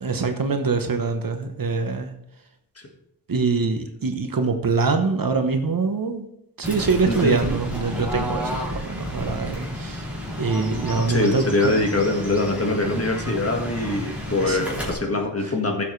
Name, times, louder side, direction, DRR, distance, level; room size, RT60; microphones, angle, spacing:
voice 1, 0.0-2.1 3.3-6.3 6.6-10.1 10.4-11.7 14.3-14.6, right 4 dB, 55° right, 6 dB, 1.0 m, -24 dB
Fowl / Bird, 6.6-14.9, equal, 5° right, 2.9 m, -31 dB
voice 2, 7.0-7.3 10.9-15.8, left 2 dB, 35° left, 2 dB, 1.7 m, -23 dB
15.0 x 7.3 x 3.2 m, 0.82 s
wide cardioid pair, 85°, 41 cm